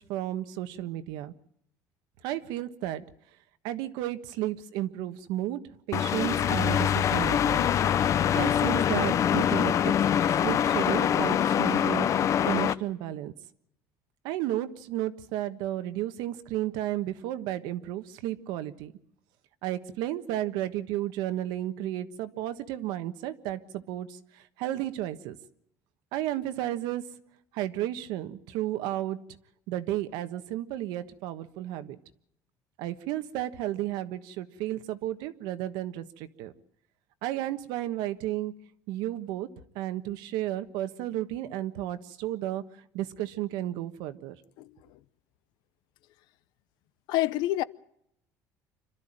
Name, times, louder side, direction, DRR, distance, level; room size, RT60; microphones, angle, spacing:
voice 1, 0.1-1.3 2.2-3.0 3.6-5.6 5.9-7.7 8.3-9.9 10.4-12.1 12.4-13.3 14.2-18.9 19.6-24.1 24.6-25.4 26.1-27.0 27.5-29.2 29.7-32.0 32.8-36.5 37.2-38.5 38.9-39.5 39.7-42.6 42.9-44.3, right 13 dB, 85° right, 1.4 m, -33 dB
sound 1, 5.9-12.7, left 9 dB, 45° left, 0.8 m, -24 dB
voice 2, 44.6-45.0 47.1-47.6, left 16 dB, 75° left, 0.8 m, -28 dB
26.5 x 13.0 x 9.0 m
cardioid pair, 125°, 7 cm